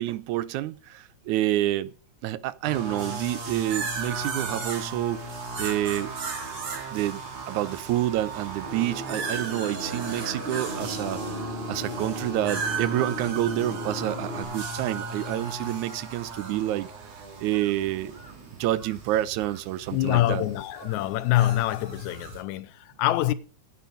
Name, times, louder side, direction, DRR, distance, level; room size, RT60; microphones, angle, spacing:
voice 1, 0.0-1.9 2.2-5.3 5.6-6.1 6.9-16.9 17.4-18.2 18.6-20.5, right 14 dB, 90° right, 2.1 m, -28 dB
sound 1, 2.6-22.4, right 3 dB, 60° right, 3.3 m, -36 dB
sound 2, 8.6-14.4, equal, 35° right, 0.9 m, -36 dB
voice 2, 19.9-23.3, left 15 dB, 85° left, 2.1 m, -25 dB
9.7 x 8.4 x 5.3 m
omnidirectional pair, 3.3 m